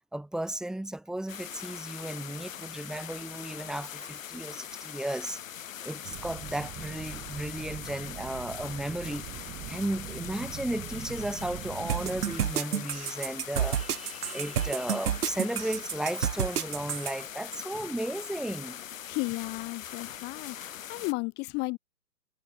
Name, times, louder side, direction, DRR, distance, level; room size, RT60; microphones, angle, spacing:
voice 1, 0.1-5.4 5.8-18.8 20.9-21.0, right 1 dB, ahead, 3.1 m, -35 dB
sound 1, 1.3-21.1, left 10 dB, 50° left, 3.3 m, -42 dB
sound 2, 6.0-12.4, right 18 dB, 15° right, 3.3 m, -43 dB
sound 3, 11.9-17.1, right 9 dB, 60° right, 1.9 m, -30 dB
voice 2, 19.1-21.8, left 26 dB, 20° left, 3.9 m, -34 dB
hypercardioid pair, 165°, 50 cm